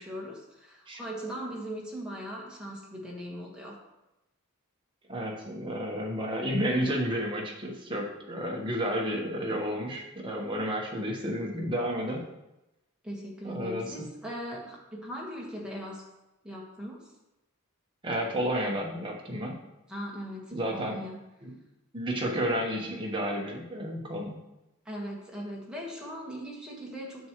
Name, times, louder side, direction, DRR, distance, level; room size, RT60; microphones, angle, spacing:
voice 1, 0.0-3.8 13.0-16.0 16.4-17.0 19.9-21.2 24.8-27.3, equal, 5° right, -4 dB, 1.5 m, -39 dB
voice 2, 5.1-12.2 13.4-13.9 18.0-19.5 20.5-21.0 21.4-21.5 21.9-24.3, equal, 20° right, -1 dB, 1.2 m, -31 dB
9.3 x 6.2 x 3.1 m, 0.95 s
head